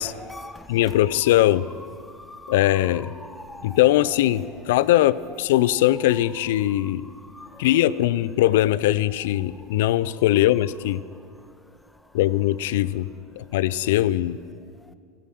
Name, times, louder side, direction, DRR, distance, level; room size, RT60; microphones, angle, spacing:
voice 1, 0.0-4.9 5.3-5.4 5.7-6.2 6.7-6.9 7.3-7.6, left 2 dB, 5° left, 11 dB, 0.7 m, -43 dB
voice 2, 0.7-1.7 2.5-3.1 3.6-7.1 7.6-11.0 12.1-13.1 13.4-14.4, left 14 dB, 75° left, 18 dB, 0.4 m, -21 dB
14.5 x 12.0 x 6.3 m, 2.1 s
hypercardioid pair, 100°, 0 cm